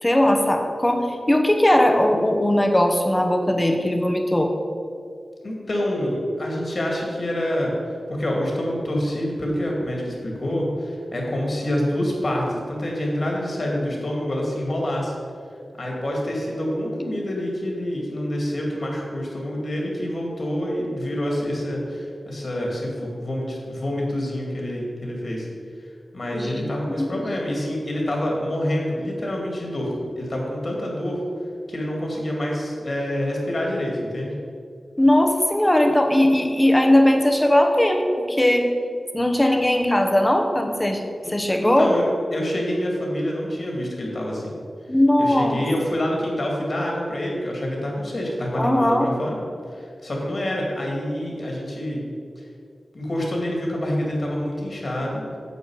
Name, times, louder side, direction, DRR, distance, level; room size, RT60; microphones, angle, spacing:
voice 1, 0.0-4.5 26.3-27.1 35.0-38.7 39.1-41.0 41.3-41.9 44.9-45.6 48.6-49.1, left 1 dB, 15° left, 4 dB, 1.0 m, -19 dB
voice 2, 5.4-7.7 8.1-15.1 15.8-25.5 26.1-31.2 31.7-34.3 41.2-41.3 41.6-42.0 42.3-44.5 45.2-49.4 49.7-52.0 52.4-52.5 52.9-55.2, left 1 dB, 50° left, -2 dB, 2.4 m, -27 dB
9.3 x 7.3 x 4.8 m, 2.3 s
wide cardioid pair, 110°, 0 cm